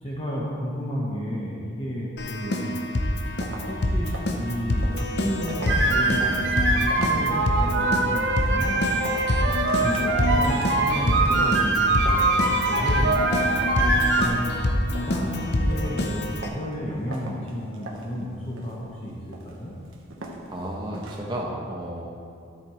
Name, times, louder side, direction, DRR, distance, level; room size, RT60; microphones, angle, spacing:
voice 1, 0.0-2.7 3.7-4.1 4.4-8.8 9.3-14.5 14.9-19.2 19.4-19.7, equal, 30° left, -6 dB, 1.1 m, -32 dB
Keyboard (musical), 2.2-16.5, left 1 dB, 55° left, 0.8 m, -26 dB
sound 1, 2.9-21.4, right 2 dB, 80° right, 1.3 m, -43 dB
sound 2, 5.7-14.3, right 2 dB, 60° right, 1.0 m, -23 dB
voice 2, 20.5-22.1, right 1 dB, 20° right, -2 dB, 1.2 m, -33 dB
13.0 x 8.3 x 3.2 m, 2.4 s
head